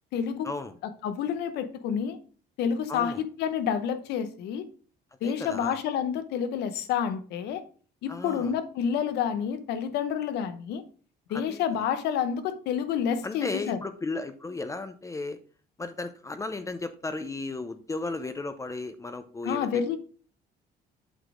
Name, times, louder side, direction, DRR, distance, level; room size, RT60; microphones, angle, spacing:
voice 1, 0.1-0.5 1.0-2.2 2.6-4.6 5.2-7.6 8.0-10.8 11.3-13.8 19.4-20.0, left 8 dB, 80° left, 0.9 m, -29 dB
voice 2, 2.9-3.2 5.2-5.8 8.1-8.5 11.3-11.6 13.2-15.4 15.8-19.7, left 3 dB, 20° left, 0.6 m, -35 dB
8.0 x 4.1 x 4.9 m
cardioid pair, 110°, 17 cm